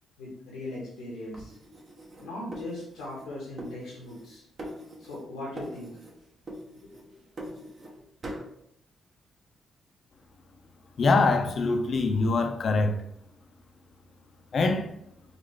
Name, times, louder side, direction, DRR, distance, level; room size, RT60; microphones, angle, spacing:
voice 1, 0.2-1.5 2.2-4.4 5.0-5.9 7.0-7.1, left 1 dB, 90° left, 1.1 m, -39 dB
sound 1, 1.3-3.3 3.6-4.3 4.6-5.3 5.6-6.2 6.5-7.9 8.2-8.5, right 1 dB, 50° right, 0.9 m, -42 dB
voice 2, 11.0-13.0 14.5-14.9, left 3 dB, 60° left, 0.5 m, -23 dB
4.1 x 2.4 x 3.1 m
hypercardioid pair, 45°, 0 cm